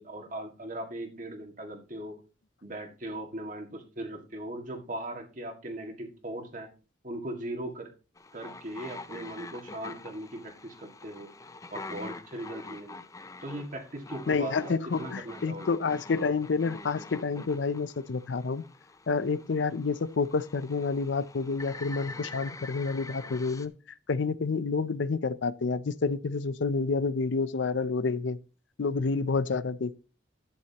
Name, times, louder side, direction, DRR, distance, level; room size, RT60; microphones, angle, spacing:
voice 1, 0.0-2.2 2.6-6.7 7.0-7.9 8.3-11.3 11.7-13.0 13.4-15.7, right 1 dB, 45° right, 2.0 m, -39 dB
sound 1, 8.2-23.7, left 3 dB, 15° left, 0.5 m, -45 dB
voice 2, 14.3-18.6 19.1-23.7 24.1-28.4 28.8-30.0, left 4 dB, 70° left, 0.5 m, -29 dB
11.5 x 9.5 x 2.9 m
head